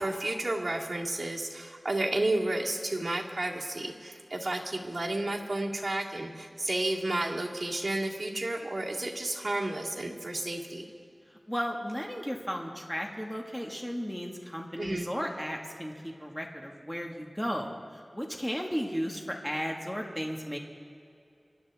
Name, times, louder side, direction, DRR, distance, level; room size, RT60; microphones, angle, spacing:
voice 1, 0.0-10.9 14.8-15.1, right 2 dB, 50° right, -3 dB, 2.1 m, -32 dB
voice 2, 11.5-20.6, equal, 5° left, 1 dB, 1.7 m, -35 dB
28.5 x 12.0 x 3.6 m, 2.4 s
wide cardioid pair, 55°, 0 cm